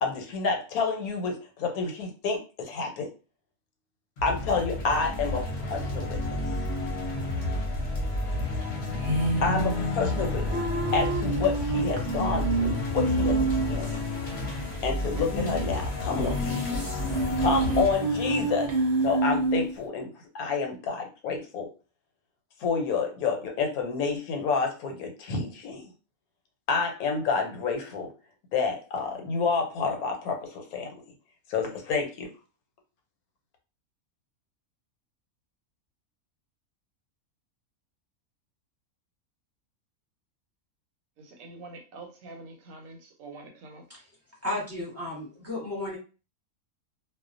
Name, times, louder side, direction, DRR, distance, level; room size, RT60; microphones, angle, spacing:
voice 1, 0.0-3.1 4.2-6.4 9.4-10.6 10.9-14.0 14.8-16.8 17.4-18.7 19.0-20.1 20.3-21.7 22.6-25.9 26.7-28.1 28.5-30.9 31.5-32.3, left 4 dB, 90° left, 1.1 m, -29 dB
sound 1, 4.2-19.6, left 2 dB, 50° left, 0.9 m, -31 dB
sound 2, 9.0-13.9 14.2-14.3 14.5-14.6 15.2-15.8 16.1-19.7, right 3 dB, 50° right, 0.7 m, -28 dB
voice 2, 41.2-43.8, right 3 dB, 75° right, 1.0 m, -45 dB
voice 3, 44.4-46.0, left 1 dB, 15° right, 0.8 m, -33 dB
2.4 x 2.1 x 2.4 m
omnidirectional pair, 1.5 m